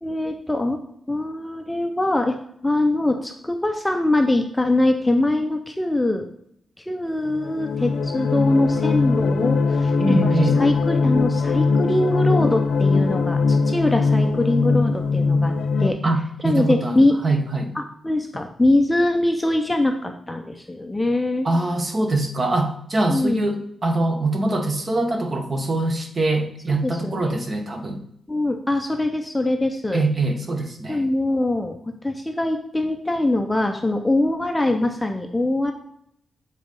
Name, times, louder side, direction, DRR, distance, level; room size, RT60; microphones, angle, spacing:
voice 1, 0.0-0.8 1.1-2.4 2.6-6.3 6.9-9.9 10.2-15.5 15.8-16.0 16.4-17.2 17.8-21.5 23.1-23.5 26.8-27.4 28.3-30.0 30.9-31.8 32.0-35.7, left 1 dB, 10° left, 4 dB, 0.5 m, -22 dB
sound 1, 7.3-15.9, left 4 dB, 85° left, 0.5 m, -21 dB
voice 2, 10.0-10.7 16.0-17.0 17.2-17.7 21.4-28.0 29.9-31.0, right 2 dB, 30° right, 5 dB, 0.9 m, -23 dB
7.4 x 3.9 x 5.2 m, 0.70 s
wide cardioid pair, 160°, 0 cm